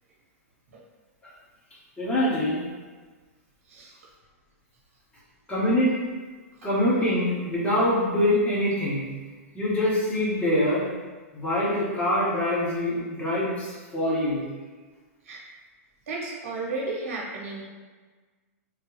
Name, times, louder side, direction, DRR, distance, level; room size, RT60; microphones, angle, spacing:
voice 1, 2.0-2.6 5.5-5.9 6.6-9.1 9.5-10.9 11.3-14.4, left 1 dB, 15° left, -8 dB, 1.3 m, -24 dB
voice 2, 16.1-17.6, right 3 dB, 70° right, -3 dB, 1.0 m, -33 dB
3.3 x 2.2 x 3.2 m, 1.4 s
hypercardioid pair, 120°, 8 cm